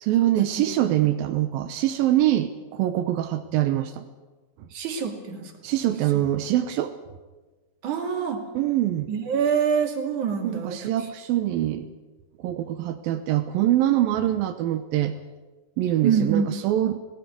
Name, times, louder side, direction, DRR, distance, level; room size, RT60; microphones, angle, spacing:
voice 1, 0.0-4.0 5.6-6.9 8.5-9.1 10.4-11.9 12.4-15.2 15.8-17.0, right 13 dB, 85° right, 8 dB, 2.7 m, -24 dB
voice 2, 4.7-5.5 7.8-8.4 9.1-10.8 16.0-16.6, right 7 dB, 60° right, 3 dB, 3.8 m, -25 dB
19.0 x 17.5 x 9.7 m, 1.2 s
omnidirectional pair, 4.0 m